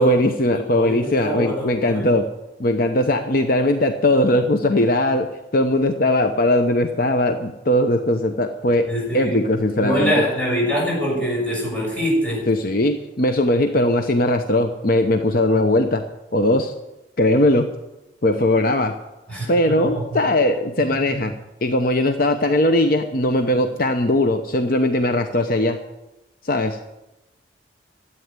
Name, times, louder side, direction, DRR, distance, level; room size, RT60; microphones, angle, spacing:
voice 1, 0.0-2.3 2.6-10.3 12.5-16.0 16.3-16.7 17.2-17.8 18.2-19.0 19.5-25.8 26.4-26.8, left 1 dB, 50° left, 6 dB, 0.8 m, -19 dB
voice 2, 1.2-2.0 8.8-9.4 9.8-12.5 19.3-20.2 20.8-21.2, equal, 5° left, -4 dB, 6.4 m, -24 dB
13.0 x 8.7 x 9.5 m, 0.96 s
head